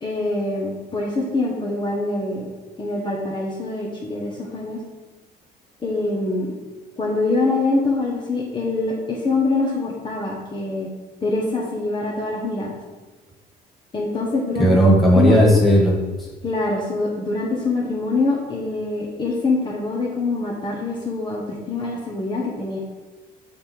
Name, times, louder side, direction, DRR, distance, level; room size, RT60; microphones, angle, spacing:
voice 1, 0.0-2.5 2.8-4.8 5.8-6.6 7.0-10.9 11.2-12.8 13.9-14.7 15.1-15.5 16.4-22.8, left 3 dB, 30° left, -3 dB, 1.0 m, -24 dB
voice 2, 14.6-16.3, equal, ahead, -4 dB, 1.8 m, -15 dB
6.7 x 3.6 x 4.5 m, 1.2 s
cardioid pair, 110°, 17 cm